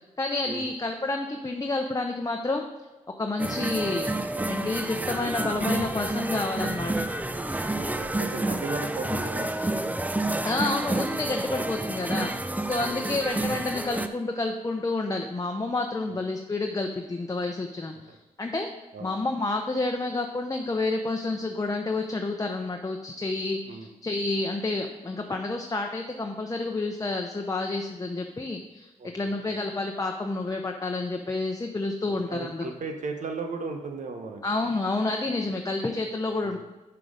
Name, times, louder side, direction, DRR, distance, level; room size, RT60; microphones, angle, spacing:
voice 1, 0.2-2.6 3.2-4.1 4.5-7.1 10.4-12.3 12.7-18.7 19.0-23.8 24.0-32.6 34.4-36.6, left 2 dB, 25° left, 3 dB, 0.8 m, -29 dB
sound 1, 3.4-14.1, right 2 dB, 10° right, 0.6 m, -29 dB
voice 2, 7.3-9.5 12.8-13.2 16.1-16.2 18.1-18.2 18.9-19.1 23.6-23.9 29.0-29.6 32.0-34.4 36.4-36.6, right 4 dB, 70° right, 4 dB, 1.1 m, -37 dB
6.0 x 5.7 x 5.1 m, 1.1 s
supercardioid pair, 45°, 13 cm